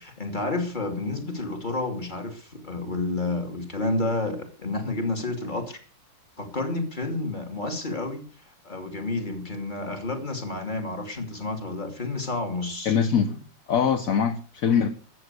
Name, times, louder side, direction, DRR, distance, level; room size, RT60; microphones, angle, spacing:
voice 1, 0.0-5.8 6.4-8.2 8.6-13.0, left 2 dB, 20° left, 2.6 m, -30 dB
voice 2, 12.8-13.4 13.7-14.9, left 7 dB, 50° left, 1.1 m, -22 dB
14.0 x 9.0 x 8.0 m
omnidirectional pair, 2.4 m